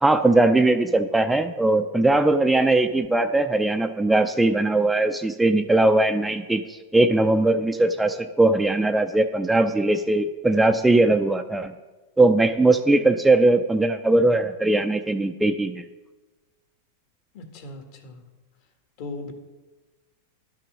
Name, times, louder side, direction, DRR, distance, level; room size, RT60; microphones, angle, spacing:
voice 1, 0.0-11.7 12.2-15.8, right 2 dB, 5° right, 7 dB, 0.4 m, -20 dB
voice 2, 17.3-18.2 19.0-19.3, left 2 dB, 55° left, 5 dB, 1.7 m, -37 dB
11.5 x 5.9 x 6.2 m, 1.2 s
supercardioid pair, 135°, 0 cm